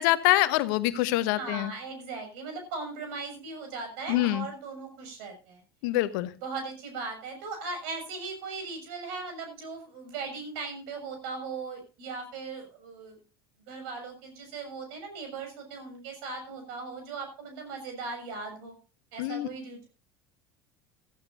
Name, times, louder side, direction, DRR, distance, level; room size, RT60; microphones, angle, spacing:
voice 1, 0.0-1.7 4.1-4.4 5.8-6.3 19.2-19.5, left 16 dB, 60° left, 13 dB, 1.1 m, -25 dB
voice 2, 1.4-5.6 6.4-13.2 13.7-18.7 19.1-19.9, right 4 dB, 60° right, 5 dB, 6.4 m, -38 dB
16.0 x 14.5 x 2.7 m, 0.33 s
figure-of-eight pair, 70°, 13 cm